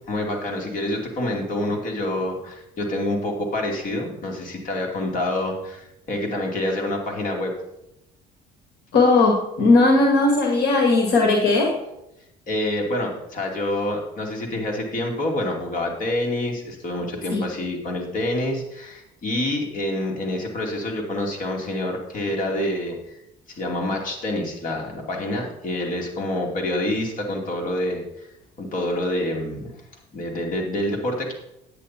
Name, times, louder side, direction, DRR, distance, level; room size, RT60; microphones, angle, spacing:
voice 1, 0.1-7.5 12.5-23.2 23.5-28.3 28.6-29.8 30.1-31.3, left 1 dB, 50° left, 0 dB, 2.8 m, -27 dB
voice 2, 8.9-11.7 17.3-17.4, left 3 dB, 75° left, 1 dB, 1.8 m, -17 dB
9.7 x 8.8 x 4.3 m, 0.86 s
cardioid pair, 110°, 17 cm